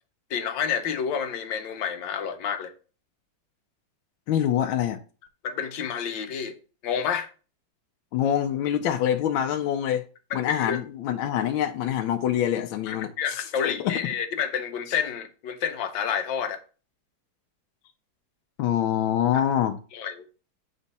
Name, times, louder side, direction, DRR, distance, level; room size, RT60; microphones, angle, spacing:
voice 1, 0.3-2.7 5.4-6.6 6.8-7.3 10.3-10.8 12.9-16.6 19.9-20.2, left 7 dB, 70° left, 1.5 m, -29 dB
voice 2, 4.3-5.0 8.1-10.0 10.3-13.9 18.6-19.8, left 10 dB, 90° left, 1.4 m, -25 dB
7.1 x 3.3 x 4.1 m
omnidirectional pair, 2.1 m